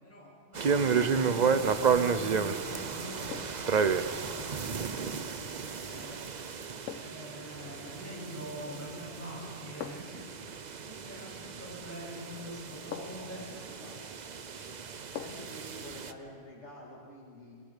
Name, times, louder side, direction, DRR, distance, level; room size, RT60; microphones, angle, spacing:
voice 1, 0.0-6.2 6.9-10.2 10.8-13.4, equal, 10° left, -6 dB, 8.0 m, -44 dB
Wind through the grass, 0.5-16.1, right 6 dB, 40° right, 0.8 m, -32 dB
sound 1, 3.3-3.7 5.8-6.0 6.9-7.3 8.7-9.1 9.8-10.2 11.9-12.0 12.9-13.4 15.2-15.6 16.0-16.1, left 9 dB, 85° left, 1.1 m, -44 dB
voice 2, 12.9-14.3 15.2-17.6, left 1 dB, 65° left, -2 dB, 2.5 m, -49 dB
26.5 x 22.5 x 5.2 m, 2.2 s
omnidirectional pair, 1.3 m